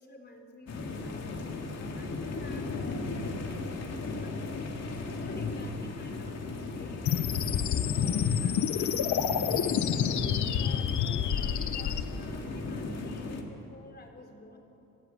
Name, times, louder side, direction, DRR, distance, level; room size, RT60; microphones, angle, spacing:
voice 1, 0.0-14.6, left 2 dB, 35° left, 3 dB, 4.1 m, -50 dB
sound 1, 0.7-13.4, left 3 dB, 55° left, 3.1 m, -36 dB
sound 2, 7.1-12.0, left 9 dB, 75° left, 1.2 m, -28 dB
26.5 x 15.5 x 7.9 m, 3.0 s
cardioid pair, 90°, 30 cm